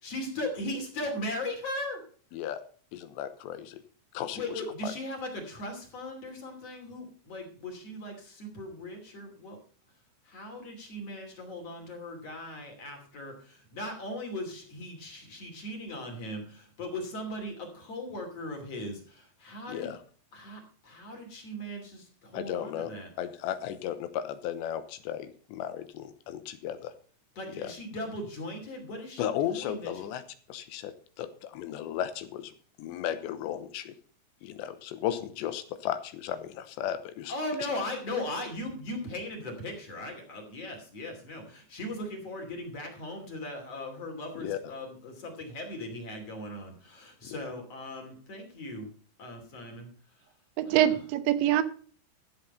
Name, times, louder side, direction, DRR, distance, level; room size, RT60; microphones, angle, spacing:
voice 1, 0.0-2.0 4.4-9.6 10.3-19.9 20.3-23.1 27.4-29.9 37.3-48.9 49.2-49.9 50.7-51.0, left 1 dB, 40° left, 3.5 m, -38 dB
voice 2, 2.9-3.8 4.1-4.9 19.7-20.0 22.3-26.9 27.5-27.7 29.2-30.2 30.5-32.5 32.8-34.0 34.4-37.3 44.4-44.7 47.2-47.4, left 11 dB, 85° left, 3.2 m, -35 dB
voice 3, 50.6-51.6, right 12 dB, 85° right, 3.2 m, -24 dB
13.0 x 7.7 x 5.5 m
omnidirectional pair, 5.1 m